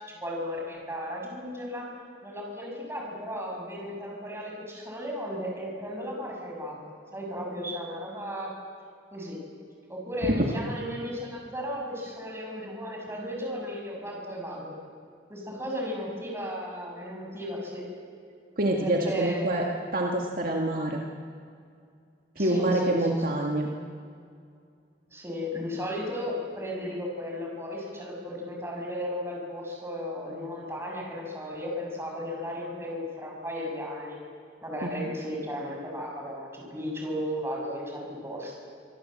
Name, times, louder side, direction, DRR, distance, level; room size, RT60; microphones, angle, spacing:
voice 1, 0.0-1.9 2.2-8.5 9.1-9.4 9.9-14.7 15.3-17.8 18.8-19.7 22.4-23.1 25.1-34.2 34.6-38.6, equal, 15° right, -1 dB, 6.6 m, -35 dB
voice 2, 18.6-21.0 22.4-23.7 34.8-35.1, right 1 dB, 50° right, 0 dB, 2.0 m, -26 dB
26.0 x 23.0 x 7.7 m, 2.3 s
head